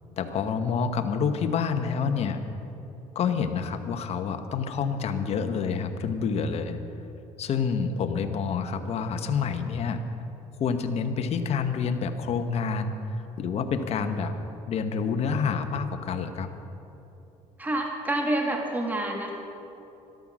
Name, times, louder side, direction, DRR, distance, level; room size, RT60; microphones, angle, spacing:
voice 1, 0.2-2.4 3.1-6.8 7.4-10.0 10.6-14.3 14.7-16.5, left 6 dB, 55° left, 7 dB, 1.2 m, -28 dB
voice 2, 17.6-19.3, right 1 dB, 15° right, 1 dB, 1.9 m, -28 dB
13.0 x 13.0 x 6.2 m, 2.9 s
cardioid pair, 105°, 13 cm